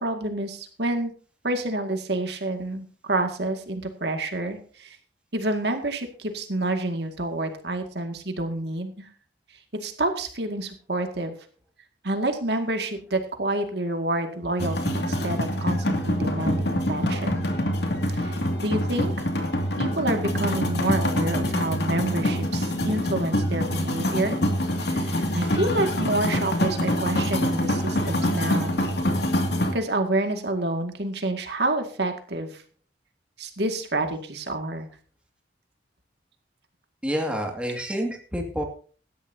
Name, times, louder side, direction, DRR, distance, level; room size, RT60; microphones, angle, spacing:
voice 1, 0.0-1.1 1.4-5.0 5.3-9.1 9.8-11.3 12.0-17.5 18.1-19.3 19.8-24.4 24.8-28.8 29.7-32.6 33.4-34.9, right 2 dB, 65° right, 5 dB, 2.1 m, -28 dB
sound 1, 14.6-29.7, left 1 dB, 65° left, 2.4 m, -25 dB
voice 2, 37.0-38.6, equal, 5° right, 1 dB, 2.2 m, -28 dB
17.5 x 13.0 x 2.8 m, 0.42 s
head